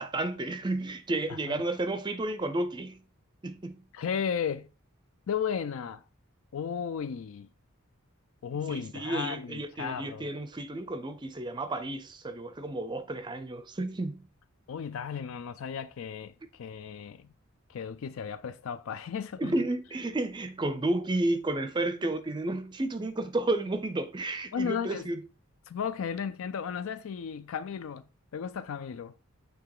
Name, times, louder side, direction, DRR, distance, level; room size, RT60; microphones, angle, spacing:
voice 1, 0.0-3.0 3.4-3.8 8.7-14.2 19.4-25.2, right 2 dB, 20° right, 0.5 m, -32 dB
voice 2, 1.3-1.6 3.9-4.7 5.3-6.0 6.5-7.5 8.4-10.3 14.7-17.3 17.7-19.5 24.5-25.1 25.7-28.0 28.3-29.1, left 7 dB, 70° left, 0.4 m, -34 dB
7.1 x 3.3 x 4.7 m
head